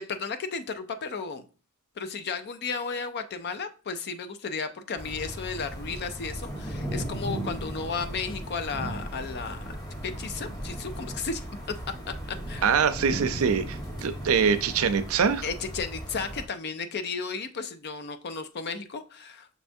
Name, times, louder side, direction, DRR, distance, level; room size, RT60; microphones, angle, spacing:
voice 1, 0.0-1.4 2.0-9.8 10.0-11.4 12.5-12.7 15.4-19.5, left 5 dB, 50° left, 10 dB, 0.5 m, -34 dB
sound 1, 5.0-16.5, right 1 dB, 20° left, 1.4 m, -37 dB
voice 2, 12.6-15.5, right 6 dB, 75° right, 10 dB, 0.5 m, -24 dB
6.1 x 3.3 x 2.6 m, 0.37 s
head